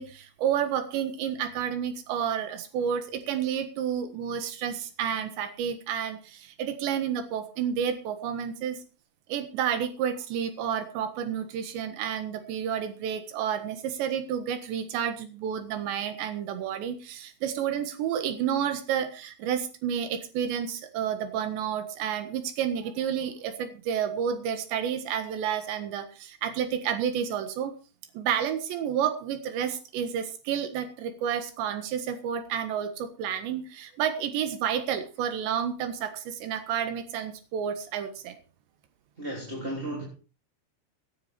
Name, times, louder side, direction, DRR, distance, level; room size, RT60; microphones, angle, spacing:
voice 1, 0.0-8.8 9.3-27.7 28.2-38.4, right 8 dB, 80° right, 9 dB, 3.8 m, -30 dB
voice 2, 39.2-40.0, right 1 dB, 15° right, -2 dB, 3.1 m, -34 dB
17.0 x 10.0 x 4.4 m, 0.34 s
omnidirectional pair, 5.1 m